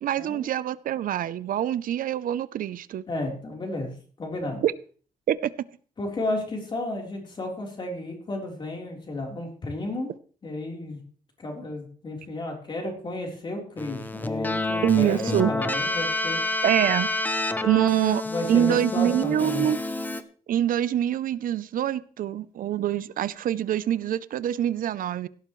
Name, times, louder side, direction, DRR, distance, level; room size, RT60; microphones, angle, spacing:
voice 1, 0.0-3.0 4.6-4.7 5.3-5.5 14.8-15.5 16.6-17.1 17.6-18.2 18.5-19.8 20.5-25.3, right 11 dB, 90° right, 17 dB, 0.6 m, -25 dB
voice 2, 3.1-3.9 4.2-4.6 6.0-10.1 10.4-11.0 11.4-16.4 18.2-19.6, left 1 dB, 35° left, 0 dB, 3.8 m, -32 dB
Keyboard (musical), 13.8-20.2, left 2 dB, 10° left, 0.8 m, -29 dB
16.5 x 12.0 x 3.2 m, 0.42 s
wide cardioid pair, 175°, 14 cm